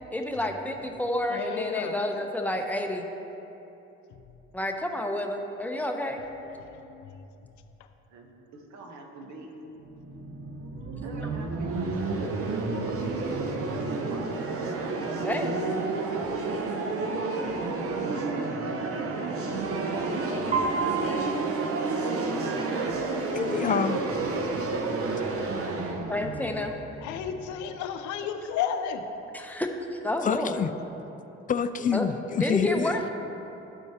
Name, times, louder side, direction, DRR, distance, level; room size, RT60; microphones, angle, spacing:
voice 1, 0.1-3.1 4.5-6.2 15.2-15.5 21.1-21.3 26.1-26.7 29.3-30.6 31.9-32.1 32.4-33.1, left 1 dB, 5° left, 3 dB, 0.7 m, -30 dB
voice 2, 1.3-2.0 6.9-7.1 27.0-29.0, left 8 dB, 75° left, 8 dB, 0.6 m, -32 dB
voice 3, 8.1-9.5 11.0-15.0 15.3-17.5 18.0-19.1 25.6-26.1, right 3 dB, 70° right, 2 dB, 1.1 m, -42 dB
sound 1, 9.8-27.6, right 3 dB, 50° right, 0.8 m, -30 dB
Piano, 20.5-22.6, right 5 dB, 25° right, 0.9 m, -32 dB
voice 4, 23.3-24.1 30.2-30.7 31.5-33.0, left 7 dB, 30° left, 11 dB, 0.3 m, -27 dB
12.5 x 4.5 x 2.9 m, 3.0 s
supercardioid pair, 70°, 30 cm